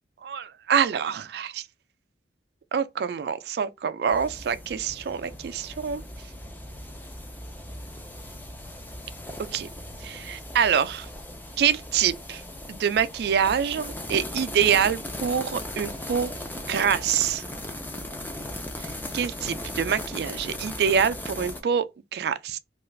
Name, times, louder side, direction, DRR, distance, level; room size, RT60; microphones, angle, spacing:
voice 1, 0.2-1.6 2.7-6.0 9.5-9.7 10.0-11.1 11.6-12.4 12.7-16.3 16.7-17.4 18.8-18.9 19.1-21.9 22.1-22.6, right 7 dB, 60° right, 0.3 m, -25 dB
sound 1, 4.1-21.6, left 1 dB, 10° left, 0.4 m, -38 dB
2.4 x 2.3 x 3.0 m
head